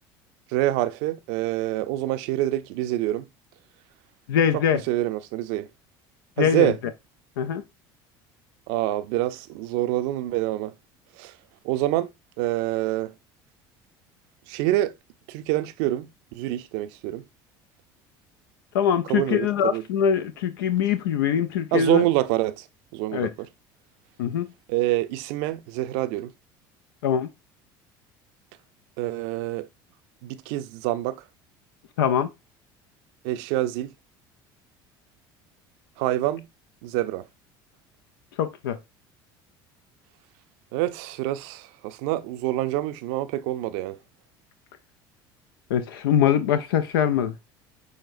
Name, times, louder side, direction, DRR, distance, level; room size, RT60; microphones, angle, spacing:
voice 1, 0.5-3.2 4.9-5.7 6.4-6.8 8.7-10.7 11.2-11.3 11.6-12.1 12.4-13.1 14.5-14.9 15.3-17.2 19.1-19.8 21.7-22.7 22.9-23.5 24.7-26.3 29.0-29.7 30.2-31.2 33.2-33.9 36.0-36.5 36.8-37.3 40.7-44.0, right 15 dB, 75° right, 0.5 m, -26 dB
voice 2, 4.3-4.8 6.4-6.7 7.4-7.6 18.7-22.0 23.1-23.3 24.2-24.5 27.0-27.3 32.0-32.3 38.4-38.8 45.7-47.3, left 8 dB, 90° left, 0.4 m, -23 dB
6.4 x 3.3 x 2.5 m
supercardioid pair, 85°, 11 cm